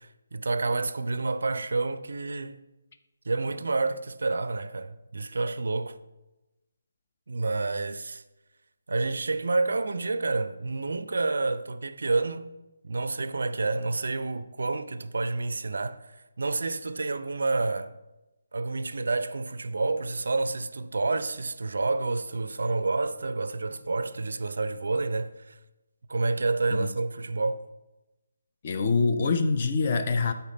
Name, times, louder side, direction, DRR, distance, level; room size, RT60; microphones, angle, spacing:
voice 1, 0.0-2.6 3.3-6.0 7.3-8.2 8.9-12.5 12.8-17.9 18.5-25.6 26.1-27.7, right 3 dB, 65° right, 0.4 m, -29 dB
voice 2, 28.6-30.3, left 4 dB, 35° left, 0.5 m, -24 dB
8.1 x 4.3 x 3.9 m
figure-of-eight pair, 145°, 0 cm